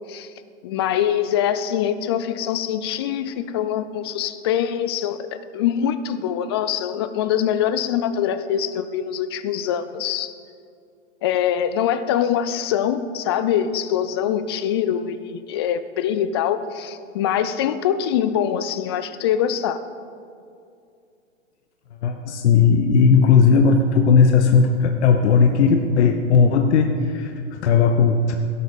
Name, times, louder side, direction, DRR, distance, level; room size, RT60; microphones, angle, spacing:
voice 1, 0.6-10.3 11.2-19.8, left 9 dB, 25° left, 12 dB, 0.3 m, -23 dB
voice 2, 22.0-28.3, left 5 dB, 60° left, 5 dB, 1.1 m, -16 dB
16.5 x 8.6 x 5.3 m, 2.4 s
hypercardioid pair, 120°, 38 cm